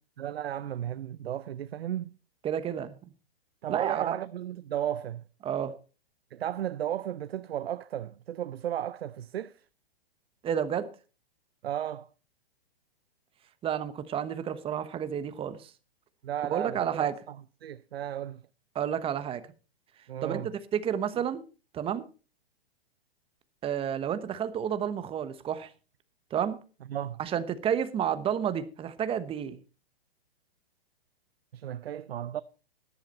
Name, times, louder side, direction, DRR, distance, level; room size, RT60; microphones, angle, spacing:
voice 1, 0.2-2.1 3.6-5.2 6.3-9.6 11.6-12.1 16.2-18.4 20.1-20.5 26.9-27.2 31.5-32.4, right 11 dB, 80° right, 0.6 m, -34 dB
voice 2, 2.4-3.0 3.7-4.1 5.4-5.7 10.4-10.9 13.6-15.7 16.5-17.1 18.7-19.4 20.2-20.4 20.7-21.4 21.7-22.0 23.6-25.7 26.3-26.6 27.2-29.6, right 9 dB, 20° right, 1.1 m, -30 dB
13.5 x 11.0 x 4.3 m
hypercardioid pair, 130°, 30 cm